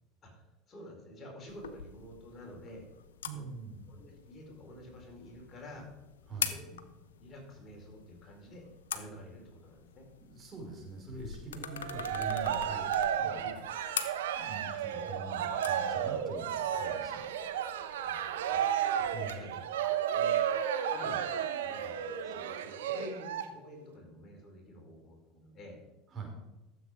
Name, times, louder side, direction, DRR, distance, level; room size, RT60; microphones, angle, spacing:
voice 1, 0.2-2.9 3.3-3.5 3.9-5.9 6.4-6.8 7.2-8.6 8.9-10.1 13.4-13.6 16.7-16.8 18.0-18.7 19.0-19.1 19.3-19.5 19.8-20.5 20.9-21.3 21.6-25.8, equal, 30° left, 0 dB, 4.4 m, -49 dB
sound 1, 1.5-19.4, left 8 dB, 90° left, 0.8 m, -45 dB
voice 2, 3.2-4.0 6.3-6.5 10.2-13.4 14.3-17.2 19.1-19.6 26.1-26.3, right 4 dB, 30° right, 0 dB, 4.8 m, -44 dB
Cheering, 11.7-23.4, right 9 dB, 80° right, 1.0 m, -33 dB
13.5 x 7.8 x 5.0 m, 1.0 s
hypercardioid pair, 85°, 0 cm